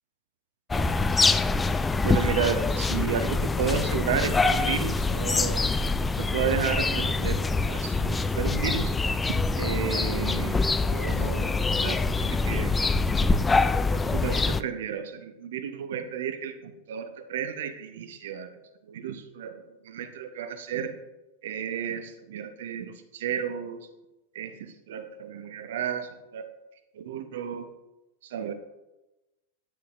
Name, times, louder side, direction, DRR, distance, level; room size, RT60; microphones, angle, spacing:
sound 1, 0.7-14.6, left 3 dB, 10° left, 0.3 m, -25 dB
voice 1, 2.0-5.6 6.2-8.9 9.5-12.7 13.9-18.5 18.9-20.9 21.4-23.9 24.3-26.5 26.9-27.7 28.2-28.5, right 8 dB, 55° right, 9 dB, 0.8 m, -32 dB
9.3 x 9.1 x 2.5 m, 1.0 s
figure-of-eight pair, 90°, 0 cm